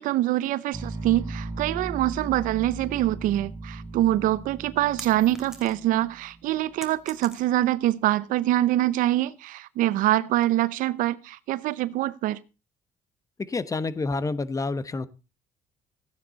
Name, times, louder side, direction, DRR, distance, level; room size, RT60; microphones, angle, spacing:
voice 1, 0.0-12.4, right 14 dB, 80° right, 0.8 m, -24 dB
sound 1, 0.7-6.8, right 2 dB, 20° right, 4.1 m, -38 dB
sound 2, 4.4-6.0 6.3-7.8, right 1 dB, 5° right, 2.5 m, -44 dB
voice 2, 13.4-15.1, left 3 dB, 25° left, 1.0 m, -28 dB
14.5 x 9.6 x 4.0 m
cardioid pair, 100°, 14 cm